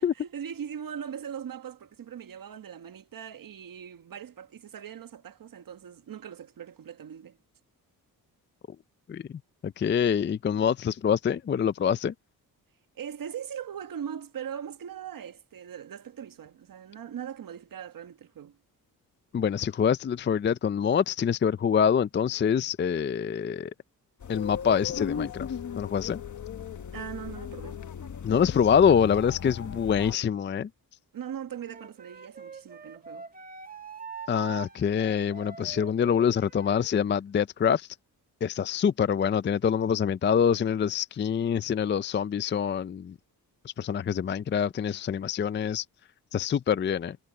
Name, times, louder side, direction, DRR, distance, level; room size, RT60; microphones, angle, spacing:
voice 1, 0.0-7.4 13.0-18.6 26.9-27.8 31.1-33.3, right 8 dB, 60° right, 1.3 m, -40 dB
voice 2, 9.6-12.1 19.3-23.7 24.3-25.5 25.8-26.2 28.2-30.7 34.3-37.9 38.4-43.1 43.6-45.8 46.3-47.2, left 7 dB, 30° left, 0.4 m, -25 dB
sound 1, 24.2-30.1, left 7 dB, 50° left, 1.3 m, -37 dB
Wind instrument woodwind instrument, 31.6-36.9, right 5 dB, 25° right, 1.4 m, -44 dB
wide cardioid pair, 120°, 37 cm